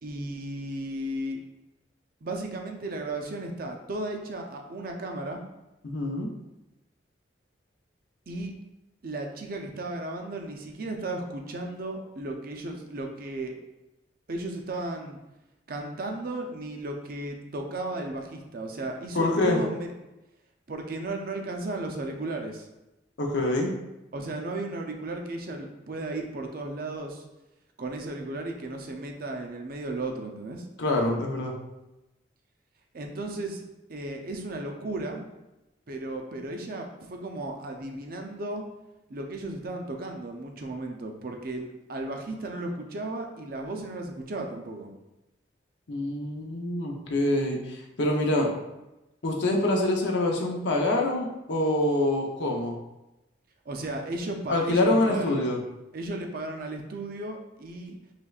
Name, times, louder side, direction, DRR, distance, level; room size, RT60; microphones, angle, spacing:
voice 1, 0.0-1.4 2.2-5.4 8.3-8.5 9.0-13.6 14.3-15.2 15.7-19.9 20.7-22.7 24.1-27.2 27.8-30.7 32.9-33.6 33.9-35.2 35.9-38.6 39.1-44.9 53.7-55.5 55.9-58.0, right 2 dB, 50° right, 3 dB, 0.5 m, -35 dB
voice 2, 5.8-6.3 19.1-19.6 23.2-23.7 30.8-31.5 45.9-48.5 49.2-52.8 54.5-55.6, left 1 dB, 70° left, 0 dB, 0.7 m, -25 dB
5.0 x 3.2 x 2.3 m, 0.96 s
head